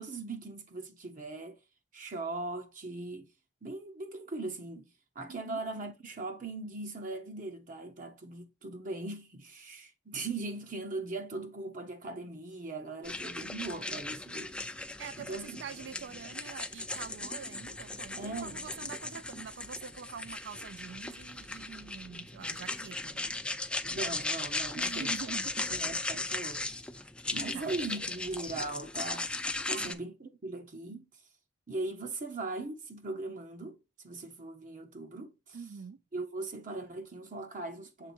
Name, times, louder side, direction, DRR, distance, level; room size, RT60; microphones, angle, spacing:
voice 1, 0.0-1.6 1.9-3.3 3.6-4.9 5.2-14.5 15.2-15.6 18.2-18.6 23.8-25.4 25.7-26.6 27.3-29.3 29.7-31.0 31.7-33.8 34.0-35.6 36.1-38.1, right 2 dB, 45° right, 0.7 m, -39 dB
voice 2, 5.3-5.6 15.0-23.3 24.8-25.7 27.0-27.1 27.5-27.7 29.7-30.0 35.5-36.0, right 6 dB, 65° right, 0.3 m, -45 dB
sound 1, 13.0-29.9, left 2 dB, 5° left, 0.4 m, -37 dB
6.8 x 3.4 x 4.3 m
head